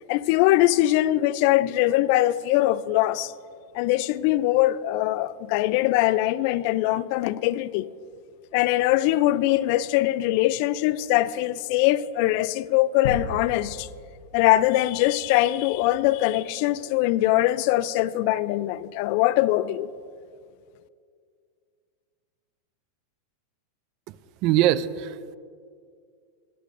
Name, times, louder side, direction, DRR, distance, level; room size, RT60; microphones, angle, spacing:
voice 1, 0.1-3.3 3.7-7.9 8.5-13.9 14.3-19.9, left 15 dB, 55° left, 0.3 m, -22 dB
sound 1, 13.0-15.0, left 5 dB, 80° left, 0.7 m, -35 dB
voice 2, 24.4-25.4, right 12 dB, 50° right, 0.4 m, -22 dB
16.5 x 10.0 x 2.5 m
supercardioid pair, 140°, 0 cm